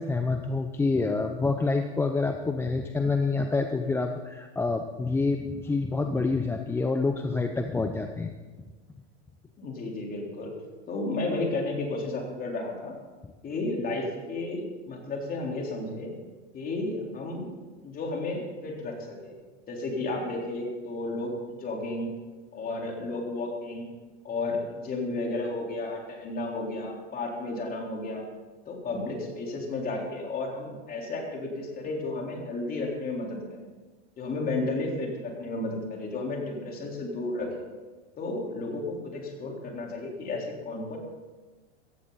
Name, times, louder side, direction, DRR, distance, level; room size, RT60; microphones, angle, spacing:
voice 1, 0.0-8.3, left 3 dB, 5° left, 6 dB, 0.6 m, -27 dB
voice 2, 9.6-10.5 10.9-13.0 13.4-16.1 16.5-17.5 17.8-19.3 19.7-22.1 22.5-23.9 24.2-28.2 28.6-33.6 34.2-37.7 38.2-41.0, left 2 dB, 25° left, 0 dB, 3.8 m, -33 dB
15.5 x 15.5 x 4.1 m, 1.3 s
hypercardioid pair, 120°, 35 cm